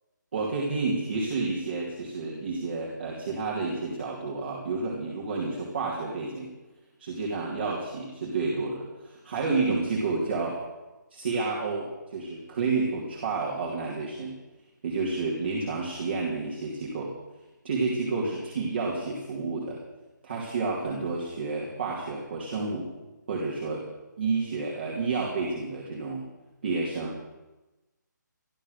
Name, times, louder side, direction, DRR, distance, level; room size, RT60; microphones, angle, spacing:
voice 1, 0.3-6.5 7.0-10.6 11.1-14.4 14.8-17.1 17.6-19.8 20.2-22.9 23.3-23.9 24.2-26.3 26.6-27.2, right 3 dB, 35° right, -5 dB, 2.8 m, -30 dB
14.5 x 12.5 x 6.6 m, 1.1 s
hypercardioid pair, 175°, 10 cm